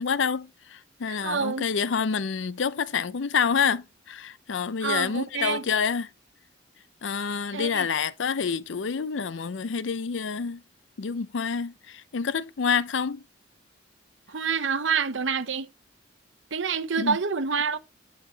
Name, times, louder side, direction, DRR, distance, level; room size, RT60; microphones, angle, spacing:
voice 1, 0.0-6.1 7.0-10.6 11.0-13.2 17.0-17.2, left 6 dB, 80° left, 0.5 m, -28 dB
voice 2, 1.1-1.6 4.8-5.7 7.5-7.9 14.3-15.7 16.5-17.8, right 5 dB, 85° right, 0.9 m, -27 dB
10.0 x 5.7 x 2.8 m
head